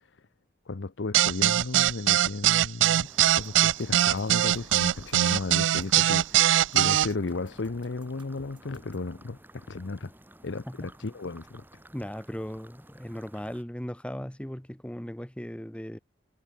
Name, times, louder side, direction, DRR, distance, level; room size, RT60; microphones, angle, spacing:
voice 1, 0.7-3.1 3.3-6.4 6.7-10.1 10.4-11.6, left 3 dB, 80° left, 0.8 m, -34 dB
sound 1, 1.1-7.1, right 13 dB, 90° right, 0.3 m, -21 dB
sound 2, 3.0-13.6, right 1 dB, 10° right, 7.5 m, -53 dB
sound 3, 3.3-9.1, right 1 dB, 25° right, 7.6 m, -55 dB
voice 2, 11.9-16.0, equal, 5° left, 0.9 m, -37 dB
head